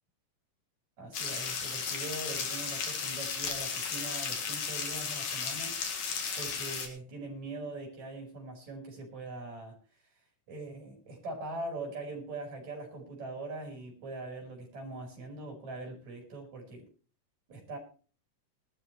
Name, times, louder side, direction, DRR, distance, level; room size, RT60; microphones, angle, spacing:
voice 1, 1.0-5.8 6.4-9.8 10.5-16.9 17.5-17.8, right 2 dB, 55° right, 2 dB, 6.0 m, -42 dB
sound 1, 1.1-6.9, left 5 dB, 65° left, 3.2 m, -35 dB
20.5 x 12.5 x 3.1 m, 0.38 s
omnidirectional pair, 3.8 m